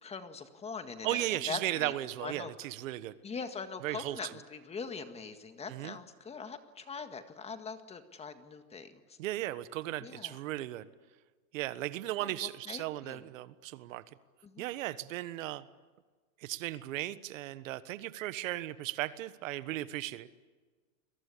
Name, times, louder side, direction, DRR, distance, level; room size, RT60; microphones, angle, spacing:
voice 1, 0.0-1.9 2.2-2.5 3.2-9.2 10.0-10.4 12.2-13.2 14.4-14.6, left 5 dB, 15° left, 8 dB, 1.8 m, -42 dB
voice 2, 1.0-3.1 3.8-4.3 5.7-6.0 9.2-10.9 11.5-14.0 14.6-15.6 16.4-20.3, right 15 dB, 65° right, 14 dB, 1.4 m, -36 dB
30.0 x 22.0 x 8.6 m, 1.4 s
supercardioid pair, 145°, 42 cm